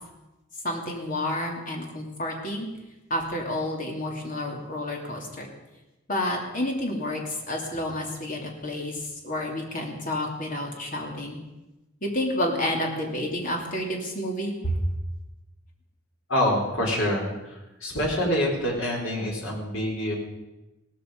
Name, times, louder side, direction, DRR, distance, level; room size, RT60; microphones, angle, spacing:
voice 1, 0.6-2.7 3.1-5.5 6.1-11.4 12.0-14.8, left 1 dB, 40° left, 1 dB, 2.7 m, -30 dB
voice 2, 16.3-20.1, equal, 80° left, -2 dB, 4.7 m, -26 dB
17.0 x 14.0 x 5.3 m, 1.0 s
head